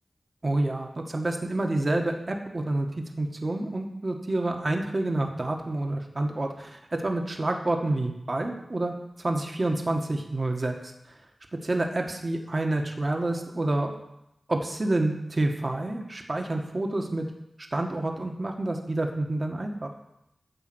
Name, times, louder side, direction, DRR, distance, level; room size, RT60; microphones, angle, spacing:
voice 1, 0.4-10.9 11.5-13.9 14.5-17.3 17.7-19.9, right 2 dB, 40° right, 3 dB, 1.5 m, -28 dB
12.0 x 5.0 x 7.9 m, 0.85 s
wide cardioid pair, 70°, 0 cm